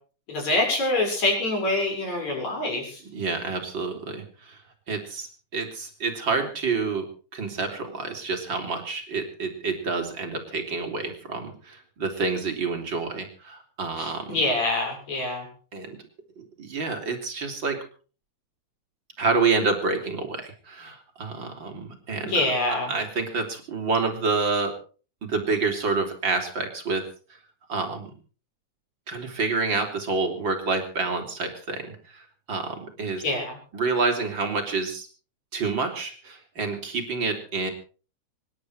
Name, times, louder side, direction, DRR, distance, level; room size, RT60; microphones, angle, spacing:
voice 1, 0.3-3.0 14.0-15.5 22.2-22.9 33.2-33.6, left 2 dB, 65° left, 0 dB, 8.2 m, -25 dB
voice 2, 3.1-4.6 4.9-7.1 7.3-14.4 15.7-16.0 16.4-17.8 19.2-22.3 22.7-24.7 25.2-27.0 27.3-27.4 27.7-28.1 29.1-33.2 33.7-35.1 35.5-37.7, right 4 dB, 40° right, 4 dB, 3.6 m, -28 dB
25.0 x 11.0 x 4.8 m, 0.40 s
omnidirectional pair, 3.3 m